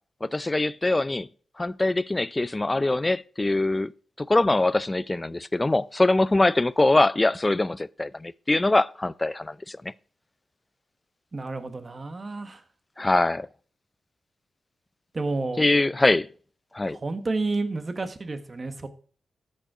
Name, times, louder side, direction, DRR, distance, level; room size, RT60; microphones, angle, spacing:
voice 1, 0.2-1.3 1.6-3.9 4.2-9.9 13.0-13.5 15.6-16.3 16.7-17.0, left 2 dB, 20° left, 0.4 m, -23 dB
voice 2, 11.3-12.6 15.1-15.6 16.9-18.9, right 3 dB, 35° right, 1.4 m, -30 dB
13.5 x 5.4 x 4.9 m
cardioid pair, 70°, 0 cm